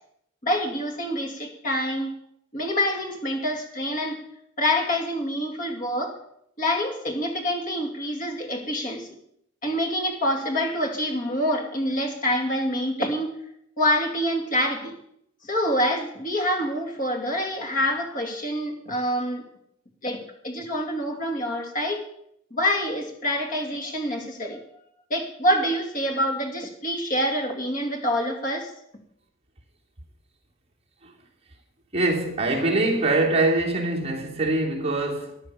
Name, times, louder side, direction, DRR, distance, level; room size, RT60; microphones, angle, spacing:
voice 1, 0.4-2.1 2.5-4.2 4.6-6.2 6.6-9.1 9.6-13.3 13.8-15.0 15.4-19.5 20.0-22.0 22.5-24.6 25.1-28.7, equal, 40° left, 2.7 m, -26 dB
voice 2, 31.9-35.4, right 2 dB, 30° right, 2.9 m, -23 dB
14.0 x 10.5 x 6.9 m
head